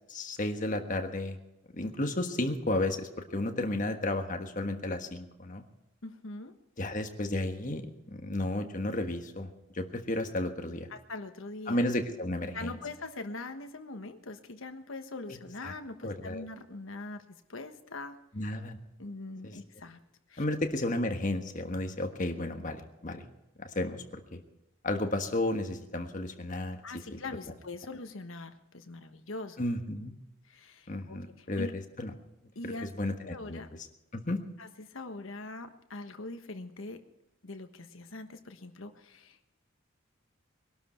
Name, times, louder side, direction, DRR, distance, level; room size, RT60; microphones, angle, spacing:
voice 1, 0.1-1.4 1.7-5.6 6.8-10.9 11.7-12.8 15.3-15.7 16.0-16.4 18.3-18.8 19.4-19.5 20.4-23.2 23.6-24.4 24.8-26.8 27.1-27.2 29.6-30.1 30.9-31.7 32.0-32.1 32.6-33.6 34.1-34.4, left 1 dB, 40° left, 5 dB, 1.4 m, -33 dB
voice 2, 6.0-6.5 10.9-11.8 12.5-18.2 19.0-20.0 20.3-20.4 26.8-29.6 30.5-31.7 32.5-32.9 33.2-33.7 34.6-37.0 37.4-39.4, left 2 dB, 75° left, 7 dB, 1.3 m, -42 dB
22.5 x 12.0 x 4.4 m, 0.91 s
head